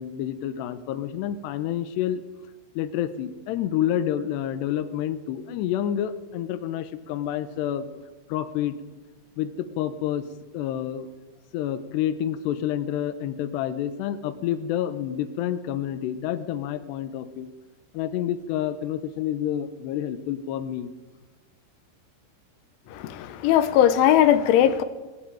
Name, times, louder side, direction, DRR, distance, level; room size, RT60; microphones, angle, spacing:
voice 1, 0.0-2.2 2.8-7.9 8.3-8.8 9.4-10.3 10.5-11.1 11.5-17.5 17.9-20.9, left 11 dB, 75° left, 10 dB, 3.0 m, -28 dB
voice 2, 22.9-24.8, left 10 dB, 90° left, 10 dB, 3.6 m, -19 dB
20.0 x 16.0 x 9.1 m, 1.2 s
omnidirectional pair, 5.4 m